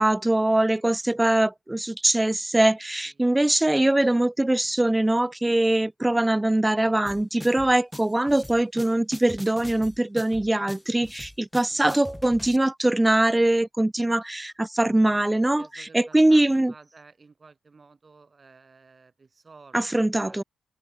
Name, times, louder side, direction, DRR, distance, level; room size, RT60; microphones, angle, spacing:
voice 1, 0.0-16.7 19.7-20.4, right 1 dB, 15° right, 0.4 m, -22 dB
sound 1, 7.1-12.6, left 1 dB, 10° left, 0.8 m, -42 dB
voice 2, 15.6-20.4, right 4 dB, 40° right, 4.3 m, -53 dB
open air
supercardioid pair, 50°, 0 cm